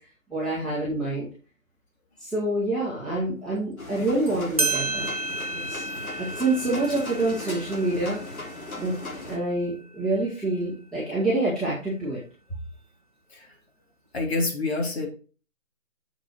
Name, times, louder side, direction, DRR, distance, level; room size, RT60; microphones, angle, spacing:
voice 1, 0.3-1.3 2.2-5.4 5.6-5.9 6.2-8.4 8.8-9.0 9.3-12.2, right 2 dB, ahead, -10 dB, 1.6 m, -27 dB
sound 1, 3.8-9.4, left 2 dB, 80° left, 3.7 m, -38 dB
sound 2, 4.3-4.4 4.6-9.7, right 3 dB, 25° right, 0.6 m, -32 dB
voice 2, 14.1-15.1, left 3 dB, 50° left, 1 dB, 3.4 m, -27 dB
7.3 x 6.8 x 4.4 m, 0.37 s
figure-of-eight pair, 160°, 41 cm